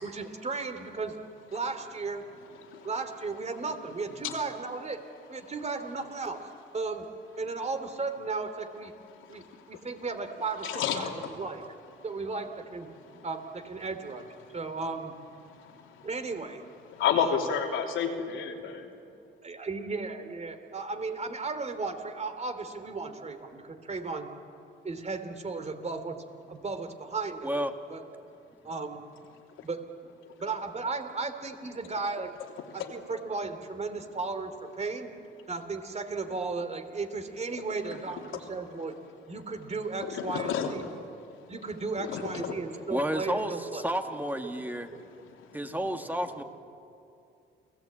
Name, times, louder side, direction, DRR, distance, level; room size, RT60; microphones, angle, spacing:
voice 1, 0.0-1.2 1.5-2.2 2.8-5.0 5.3-6.4 6.7-7.1 7.4-8.9 9.3-11.1 11.4-11.6 12.0-12.9 13.2-15.1 16.0-16.6 17.2-17.4 19.4-24.3 24.8-27.5 27.9-28.0 28.6-29.0 29.6-29.8 30.4-32.3 32.7-35.1 35.5-39.0 39.3-40.9 41.5-43.8, right 4 dB, 35° right, 8 dB, 2.9 m, -35 dB
voice 2, 9.2-9.6 10.6-11.3 15.5-16.1 16.9-18.9 32.8-32.9 37.9-38.0 40.1-41.0 42.0-42.5, left 7 dB, 90° left, 2 dB, 3.1 m, -31 dB
voice 3, 42.9-44.9 45.5-46.4, equal, 10° right, 6 dB, 1.9 m, -31 dB
29.0 x 17.5 x 8.7 m, 2.6 s
cardioid pair, 90°, 20 cm